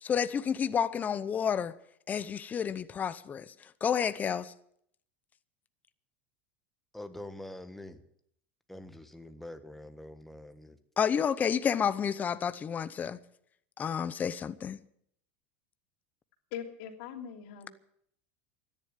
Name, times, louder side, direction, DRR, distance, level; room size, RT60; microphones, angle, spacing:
voice 1, 0.0-1.7 2.1-3.5 3.8-4.5 11.0-13.2 13.8-14.8, left 7 dB, 25° left, 0.8 m, -30 dB
voice 2, 6.9-8.0 8.7-10.8, left 1 dB, 5° left, 1.4 m, -45 dB
voice 3, 16.5-17.7, left 8 dB, 70° left, 2.9 m, -41 dB
13.5 x 10.5 x 9.0 m
supercardioid pair, 120°, 6 cm